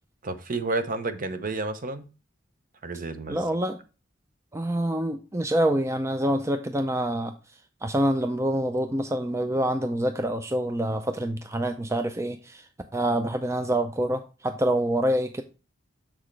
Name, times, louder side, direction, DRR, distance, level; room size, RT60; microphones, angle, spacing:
voice 1, 0.2-2.1 2.8-3.4, right 3 dB, 45° right, 0.8 m, -30 dB
voice 2, 3.3-3.8 4.5-7.3 7.8-15.4, right 1 dB, 15° right, 0.4 m, -26 dB
7.2 x 6.2 x 3.2 m
head